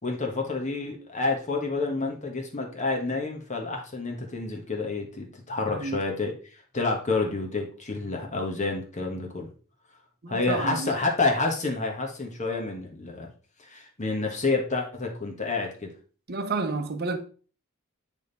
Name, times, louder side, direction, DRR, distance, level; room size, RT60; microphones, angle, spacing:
voice 1, 0.0-9.5 10.3-13.3 13.6-15.9, left 3 dB, 35° left, 1.4 m, -29 dB
voice 2, 5.7-6.0 10.2-10.9 16.3-17.2, right 3 dB, 50° right, 0.8 m, -30 dB
8.9 x 3.6 x 4.1 m
head